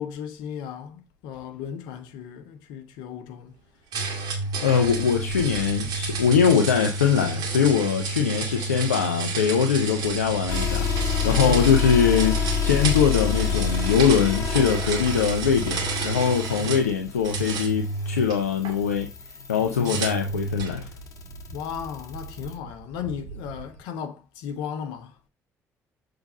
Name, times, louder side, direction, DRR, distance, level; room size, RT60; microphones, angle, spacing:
voice 1, 0.0-3.6 11.2-11.8 16.6-17.0 19.6-20.2 21.5-25.2, left 8 dB, 70° left, 1.0 m, -36 dB
sound 1, 3.9-16.9 17.2-18.7 19.8-20.8, right 3 dB, 65° right, 2.0 m, -30 dB
voice 2, 4.6-19.1 19.5-20.9, left 7 dB, 85° left, 0.5 m, -22 dB
Bird, 4.7-9.2 9.6-23.8, right 3 dB, 85° right, 1.2 m, -44 dB
sound 2, 10.5-22.5, left 7 dB, 45° left, 1.7 m, -30 dB
6.9 x 3.8 x 5.1 m
figure-of-eight pair, 50°, 8 cm